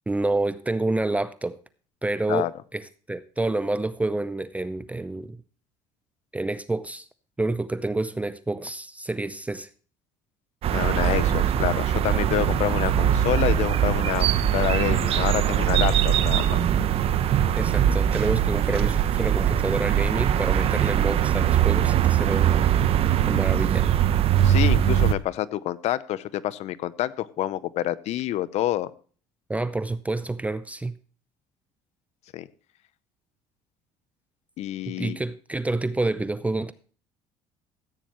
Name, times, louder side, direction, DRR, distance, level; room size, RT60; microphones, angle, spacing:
voice 1, 0.1-1.6 2.0-5.4 6.3-7.1 7.4-9.7 17.6-22.7 23.3-24.0 29.5-30.9 34.9-36.7, right 2 dB, 10° right, 0.5 m, -28 dB
sound 1, 10.6-25.1, right 10 dB, 55° right, 0.8 m, -21 dB
voice 2, 10.7-16.6 24.4-28.9 32.3-32.5 34.6-35.2, left 13 dB, 60° left, 0.6 m, -27 dB
14.5 x 9.2 x 3.0 m
supercardioid pair, 100°, 12 cm